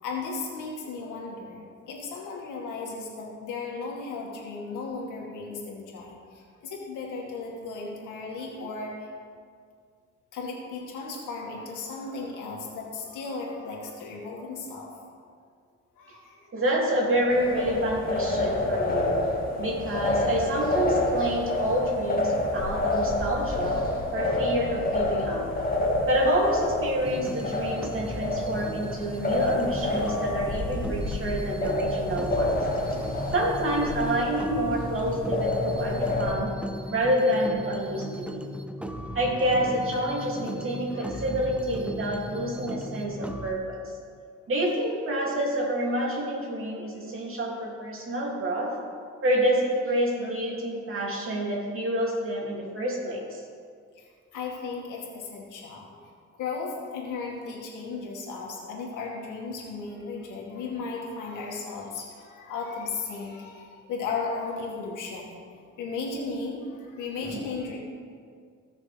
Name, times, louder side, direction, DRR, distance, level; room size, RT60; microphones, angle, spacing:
voice 1, 0.0-9.1 10.3-14.9 16.0-16.5 33.0-33.4 37.2-37.4 40.9-41.2 54.0-56.0 56.4-67.8, left 4 dB, 90° left, -2 dB, 2.2 m, -36 dB
voice 2, 16.5-19.1 19.6-23.8 24.1-25.5 26.1-32.6 33.3-36.5 36.9-38.5 39.1-43.8 44.5-48.7 49.2-53.4, right 1 dB, 45° right, -2 dB, 2.8 m, -28 dB
sound 1, 17.3-36.3, left 2 dB, 30° left, 2.0 m, -28 dB
sound 2, 27.0-43.5, equal, 5° right, 0.7 m, -37 dB
17.0 x 6.5 x 3.5 m, 2.1 s
cardioid pair, 90°, 30 cm